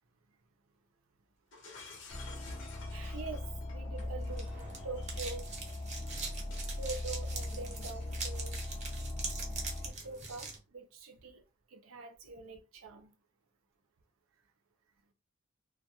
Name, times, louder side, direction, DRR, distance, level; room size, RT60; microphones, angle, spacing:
Shatter, 1.5-8.9, left 3 dB, 60° left, 0.7 m, -54 dB
sound 1, 2.1-9.9, left 1 dB, 25° left, 0.4 m, -40 dB
voice 1, 2.9-4.5 4.8-5.4 6.7-8.6 9.8-11.4 11.7-13.1, right 3 dB, 90° right, 0.6 m, -44 dB
sound 2, 4.0-10.6, right 4 dB, 35° right, 0.7 m, -43 dB
2.3 x 2.1 x 2.7 m
head